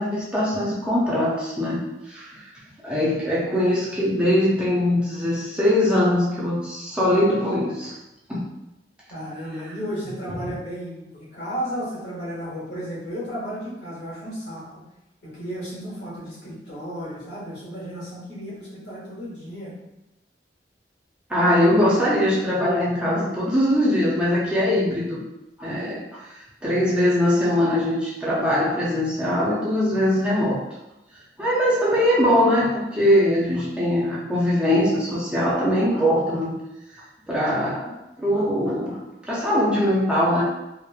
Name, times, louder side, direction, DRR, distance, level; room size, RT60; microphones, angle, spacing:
voice 1, 0.0-1.8 2.1-2.4 2.8-7.9 8.3-8.4 21.3-25.2 25.6-30.6 31.4-36.6 37.3-39.0 39.3-40.4, left 1 dB, 5° right, -7 dB, 0.5 m, -21 dB
voice 2, 9.1-14.8 15.2-19.7, equal, 70° left, -8 dB, 1.2 m, -33 dB
2.9 x 2.0 x 2.3 m, 0.93 s
head